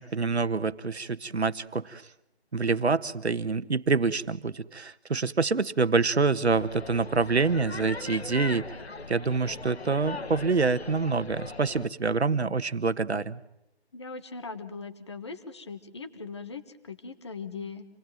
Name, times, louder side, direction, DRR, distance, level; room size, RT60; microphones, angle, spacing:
voice 1, 0.0-2.1 2.5-8.8 9.1-13.4, right 4 dB, 75° right, 13 dB, 1.5 m, -26 dB
sound 1, 6.5-11.9, left 3 dB, 70° left, 1.5 m, -39 dB
voice 2, 13.9-17.9, left 4 dB, 25° left, 10 dB, 1.5 m, -40 dB
28.0 x 19.5 x 9.2 m, 0.81 s
figure-of-eight pair, 170°, 33 cm